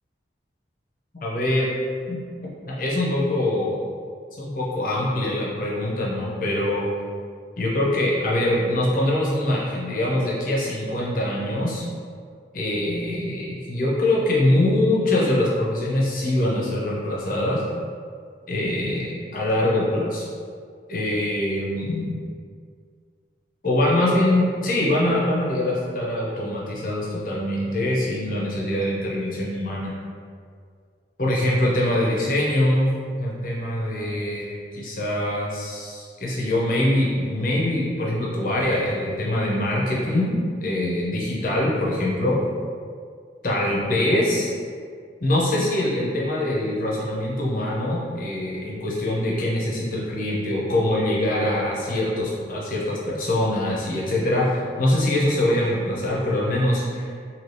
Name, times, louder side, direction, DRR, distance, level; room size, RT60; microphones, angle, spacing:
voice 1, 1.1-1.7 2.1-2.2 2.7-3.8 4.3-6.9 7.6-11.9 12.5-17.6 18.5-20.3 20.9-22.2 23.6-29.9 31.2-40.3 40.6-42.4 43.4-44.5 45.2-57.1, left 1 dB, 45° left, -5 dB, 0.6 m, -23 dB
2.8 x 2.7 x 3.2 m, 2.1 s
head